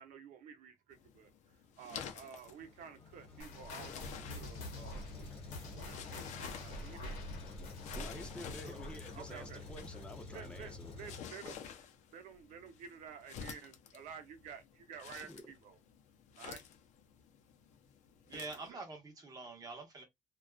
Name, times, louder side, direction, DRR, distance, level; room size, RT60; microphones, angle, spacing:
voice 1, 0.0-5.1 5.7-7.2 8.6-9.6 10.3-11.6 12.1-15.8 16.4-16.6 18.3-18.8, right 7 dB, 85° right, 0.7 m, -52 dB
sound 1, 0.9-18.7, left 8 dB, 65° left, 0.5 m, -51 dB
Truck, 2.4-11.2, left 3 dB, 45° left, 0.9 m, -50 dB
sound 2, 3.4-10.3 10.5-10.8 11.4-11.5 12.3-12.4, left 1 dB, 90° left, 0.8 m, -47 dB
voice 2, 7.9-10.9 15.3-15.4, left 1 dB, 10° left, 0.5 m, -49 dB
voice 3, 18.3-20.0, right 3 dB, 30° right, 1.0 m, -46 dB
2.4 x 2.3 x 2.3 m
cardioid pair, 140°, 13 cm